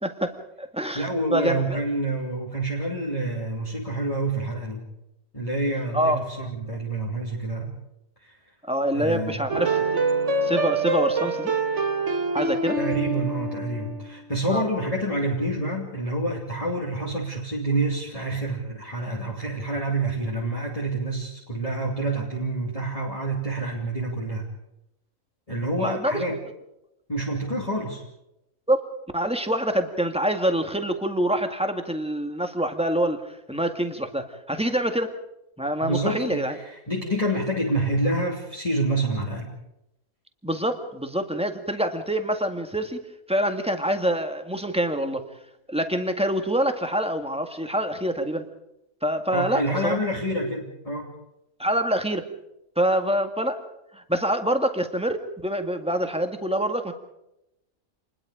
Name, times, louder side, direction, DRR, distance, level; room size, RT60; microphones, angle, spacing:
voice 1, 0.0-1.8 5.9-6.5 8.7-10.0 10.4-11.5 12.3-12.8 14.5-14.7 25.8-26.2 28.7-28.8 29.1-35.1 35.6-36.6 40.4-43.0 43.3-45.2 45.7-48.4 49.0-50.0 51.6-52.2 52.8-53.6 53.9-56.9, right 1 dB, 5° right, 6 dB, 1.8 m, -26 dB
voice 2, 0.9-4.8 5.3-7.8 8.2-8.4 8.9-9.4 12.8-24.4 25.5-26.4 27.1-28.0 35.8-39.5 49.3-51.1, right 1 dB, 25° left, -3 dB, 3.0 m, -27 dB
sound 1, 9.5-14.1, right 3 dB, 50° right, 1.8 m, -25 dB
27.5 x 21.0 x 5.1 m, 0.86 s
omnidirectional pair, 1.6 m